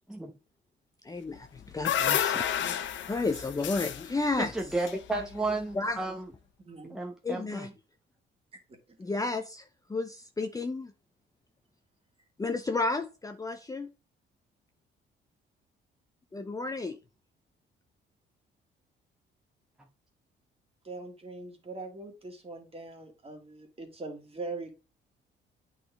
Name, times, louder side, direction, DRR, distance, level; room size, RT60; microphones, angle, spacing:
voice 1, 1.0-4.5 5.7-6.0 7.2-7.7 9.0-10.9 12.4-13.9 16.3-17.0, left 3 dB, 15° left, 0.6 m, -32 dB
sound 1, 1.4-5.6, left 9 dB, 70° left, 0.7 m, -31 dB
voice 2, 4.4-6.3 6.9-7.7, right 2 dB, 5° right, 0.9 m, -33 dB
voice 3, 6.7-7.0 8.9-9.2 20.8-24.7, right 3 dB, 30° right, 1.9 m, -42 dB
8.4 x 3.9 x 3.4 m
cardioid pair, 90°, 20 cm